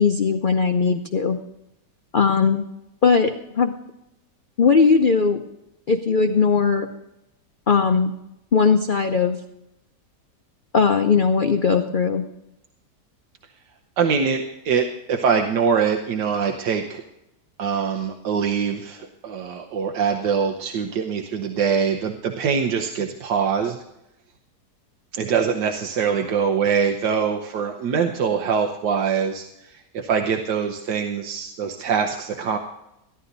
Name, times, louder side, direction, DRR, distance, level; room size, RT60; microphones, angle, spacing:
voice 1, 0.0-1.4 2.1-2.6 3.0-3.7 4.6-5.4 5.9-6.9 7.7-8.1 8.5-9.4 10.7-12.3, left 5 dB, 50° left, 5 dB, 0.6 m, -19 dB
voice 2, 14.0-17.0 17.6-23.8 25.1-32.6, right 6 dB, 90° right, 3 dB, 1.6 m, -23 dB
15.5 x 11.5 x 4.0 m, 0.85 s
omnidirectional pair, 1.8 m